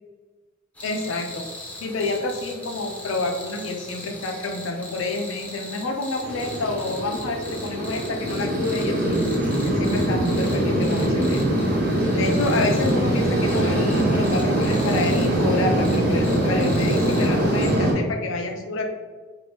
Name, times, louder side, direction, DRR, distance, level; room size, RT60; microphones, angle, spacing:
sound 1, 0.7-17.8, left 1 dB, 5° left, 0.5 m, -40 dB
voice 1, 0.8-1.4 1.8-9.2 9.6-11.5 12.2-18.9, left 2 dB, 80° left, 3 dB, 0.4 m, -28 dB
sound 2, 6.2-17.9, right 1 dB, 55° right, 0.8 m, -22 dB
2.7 x 2.5 x 3.3 m, 1.3 s
head